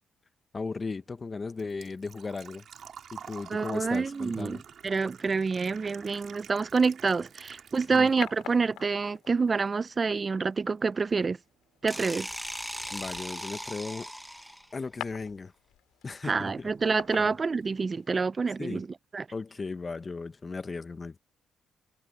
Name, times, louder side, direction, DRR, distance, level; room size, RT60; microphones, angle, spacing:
voice 1, 0.5-2.7 3.1-4.6 7.9-8.1 12.9-14.1 14.7-15.5 16.0-16.7 17.2-17.3 18.6-18.8 19.3-21.2, left 4 dB, 30° left, 0.9 m, -36 dB
Engine / Trickle dribble / Fill (with liquid), 0.6-8.6 8.9-9.9 10.2-10.3 12.2-12.3 12.5-12.8 13.2-13.3 13.5-13.6, right 8 dB, 60° right, 2.6 m, -48 dB
voice 2, 3.5-11.4 11.8-12.3 16.2-18.9 19.1-19.3, right 4 dB, 35° right, 0.4 m, -27 dB
sound 1, 7.2-18.2, left 13 dB, 90° left, 3.7 m, -48 dB
sound 2, 11.9-14.8, equal, 5° right, 1.0 m, -38 dB
cardioid pair, 90°, 0 cm